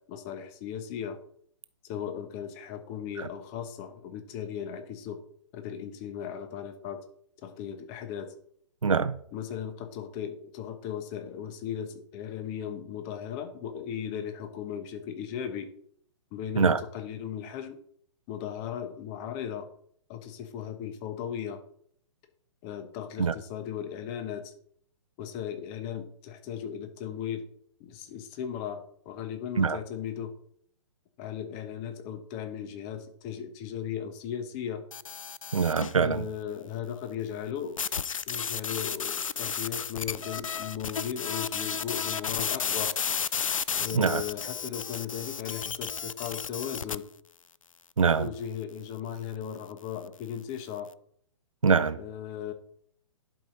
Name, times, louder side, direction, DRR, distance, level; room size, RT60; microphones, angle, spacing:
voice 1, 0.1-1.2 1.8-5.2 5.5-7.0 7.4-8.3 9.3-15.7 16.3-17.8 18.3-19.7 20.1-21.6 22.6-24.5 25.2-27.4 27.8-30.3 31.2-34.8 35.9-37.8 38.2-42.9 43.8-47.0 48.2-50.9 51.9-52.5, left 8 dB, 30° left, 1.1 m, -37 dB
voice 2, 8.8-9.1 16.6-16.8 23.2-23.3 29.6-29.8 35.5-36.3 43.9-44.2 48.0-48.3 51.6-52.0, right 5 dB, 85° right, 0.7 m, -23 dB
sound 1, 34.9-36.0 37.8-47.0, left 7 dB, 85° left, 0.4 m, -33 dB
11.0 x 5.0 x 3.9 m
figure-of-eight pair, 125°, 17 cm